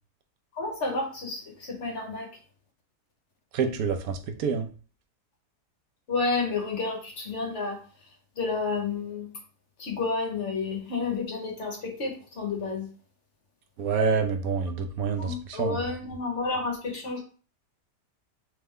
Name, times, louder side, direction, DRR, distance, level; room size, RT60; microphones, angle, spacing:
voice 1, 0.5-2.3 6.1-7.8 8.4-9.3 9.8-12.9 15.2-17.2, left 4 dB, 50° left, 1 dB, 1.0 m, -30 dB
voice 2, 3.5-4.7 13.8-15.8, right 5 dB, 70° right, 7 dB, 1.0 m, -27 dB
3.4 x 3.3 x 3.6 m, 0.39 s
omnidirectional pair, 1.8 m